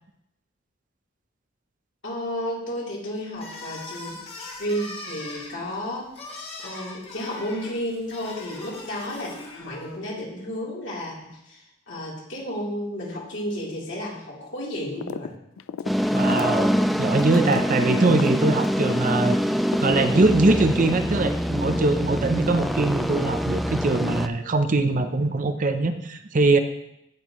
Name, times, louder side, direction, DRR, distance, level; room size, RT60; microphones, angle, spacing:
voice 1, 2.0-6.1 6.6-15.3, equal, 65° left, -5 dB, 3.5 m, -32 dB
sound 1, 3.3-10.0, left 2 dB, 30° left, 1.6 m, -40 dB
sound 2, 15.0-15.3 15.6-19.4 19.7-20.6, left 6 dB, 90° left, 0.4 m, -35 dB
sound 3, 15.9-24.3, equal, ahead, 0.3 m, -24 dB
voice 2, 16.1-19.4 19.8-26.6, right 3 dB, 40° right, 8 dB, 0.6 m, -22 dB
16.5 x 5.9 x 3.1 m, 0.80 s
head